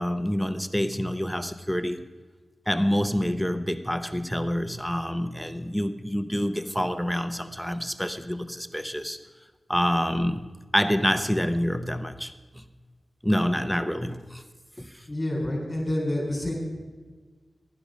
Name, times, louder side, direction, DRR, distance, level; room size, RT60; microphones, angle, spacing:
voice 1, 0.0-2.0 2.7-9.2 9.7-10.5 10.7-12.6 13.2-14.4 14.8-15.0, equal, ahead, 10 dB, 0.7 m, -27 dB
voice 2, 15.1-16.5, left 1 dB, 20° left, -2 dB, 4.4 m, -28 dB
15.0 x 11.5 x 5.2 m, 1.4 s
wide cardioid pair, 85°, 0 cm